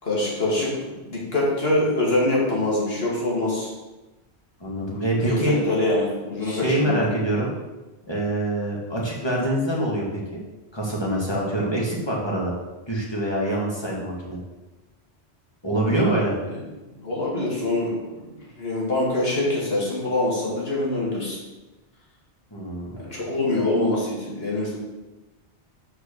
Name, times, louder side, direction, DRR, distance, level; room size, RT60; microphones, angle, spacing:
voice 1, 0.0-3.7 5.2-7.1 16.9-21.4 23.0-24.8, left 2 dB, 65° left, -5 dB, 2.5 m, -24 dB
voice 2, 4.6-5.6 6.4-7.5 8.1-10.4 10.7-12.5 12.9-14.4 15.6-16.4 22.5-22.9, right 1 dB, 25° left, -4 dB, 2.0 m, -25 dB
6.6 x 4.9 x 6.6 m, 1.1 s
omnidirectional pair, 1.1 m